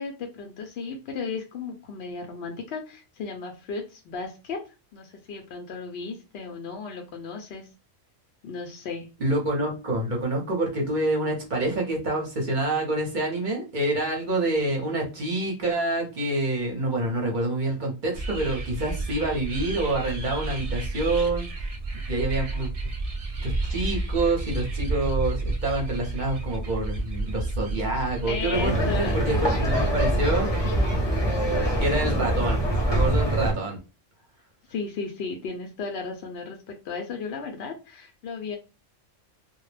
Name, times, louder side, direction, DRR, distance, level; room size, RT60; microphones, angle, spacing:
voice 1, 0.0-4.6 4.9-7.7 8.4-9.1 28.3-29.2 34.7-38.6, left 4 dB, 65° left, 3 dB, 0.7 m, -35 dB
voice 2, 9.2-21.5 22.1-22.7 23.4-30.5 31.8-32.6 32.9-33.8, right 2 dB, 45° right, 0 dB, 0.7 m, -27 dB
sound 1, 18.1-30.2, right 2 dB, 70° right, 0.3 m, -31 dB
sound 2, 28.5-33.5, right 1 dB, 25° left, 0.6 m, -24 dB
2.2 x 2.0 x 3.1 m, 0.31 s
omnidirectional pair, 1.3 m